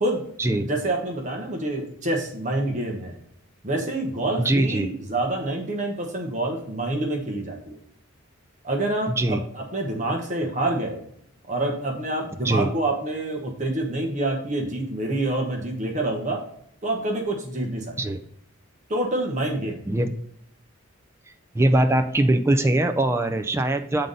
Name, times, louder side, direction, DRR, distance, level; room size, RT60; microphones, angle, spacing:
voice 1, 0.6-3.2 3.6-7.8 8.6-11.0 11.5-16.4 16.8-18.2 18.9-19.8, right 2 dB, 35° right, 2 dB, 1.0 m, -27 dB
voice 2, 4.4-4.9 9.1-9.4 12.4-12.7 18.0-18.2 19.9-20.1 21.5-24.1, right 1 dB, 10° right, 7 dB, 0.4 m, -22 dB
7.8 x 3.9 x 5.3 m, 0.69 s
head